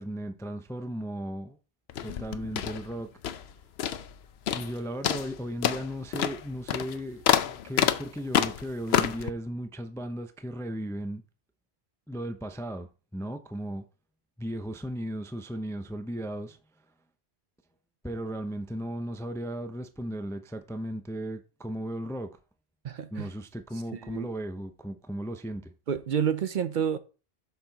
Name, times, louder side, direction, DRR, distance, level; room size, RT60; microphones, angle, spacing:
voice 1, 0.0-1.6 2.0-3.1 4.5-11.2 12.1-13.8 14.4-16.6 18.0-22.3 23.1-25.7, equal, 5° left, 0.4 m, -36 dB
sound 1, 1.9-3.5 3.8-4.2 4.5-4.8 5.0-9.3, left 9 dB, 80° left, 0.9 m, -28 dB
voice 2, 22.8-23.3 23.9-24.3 25.9-27.0, right 8 dB, 55° right, 0.7 m, -29 dB
7.1 x 5.8 x 3.9 m
omnidirectional pair, 1.1 m